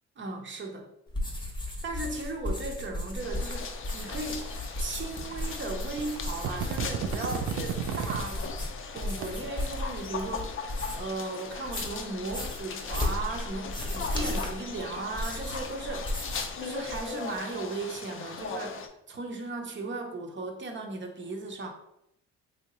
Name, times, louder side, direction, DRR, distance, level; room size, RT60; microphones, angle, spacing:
voice 1, 0.2-0.9 1.8-4.5 4.8-8.5 8.9-21.7, right 3 dB, 40° right, 2 dB, 0.7 m, -37 dB
sound 1, 1.1-11.1 11.5-16.6 16.8-17.4, left 1 dB, 15° left, 0.8 m, -35 dB
sound 2, 3.2-18.9, left 5 dB, 45° left, 0.5 m, -39 dB
sound 3, 4.4-4.5 5.4-5.5 6.0-6.2 6.4-8.2 9.0-9.2, right 7 dB, 70° right, 0.5 m, -32 dB
3.3 x 2.7 x 3.0 m, 0.79 s
cardioid pair, 90°, 30 cm